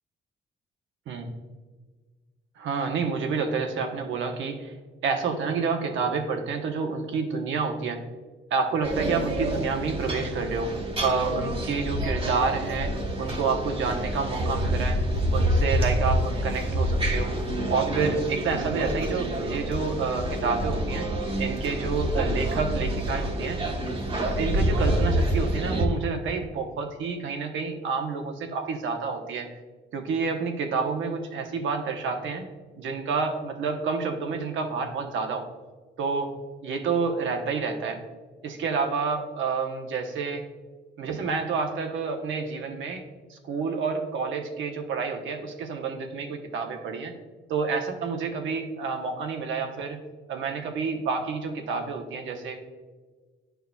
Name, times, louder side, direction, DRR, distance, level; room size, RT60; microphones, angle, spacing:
voice 1, 2.6-4.7 5.0-8.0 8.5-12.9 13.2-15.0 15.3-17.3 17.7-21.1 21.4-23.6 24.2-29.5 29.9-32.5 32.8-35.5 36.0-36.3 36.6-38.0 38.4-40.4 41.0-43.0 43.3-47.1 47.5-50.0 50.3-52.6, right 5 dB, 75° right, 4 dB, 1.0 m, -29 dB
sound 1, 8.8-25.9, equal, 30° right, 1.1 m, -27 dB
10.0 x 4.6 x 2.3 m, 1.4 s
cardioid pair, 90°, 20 cm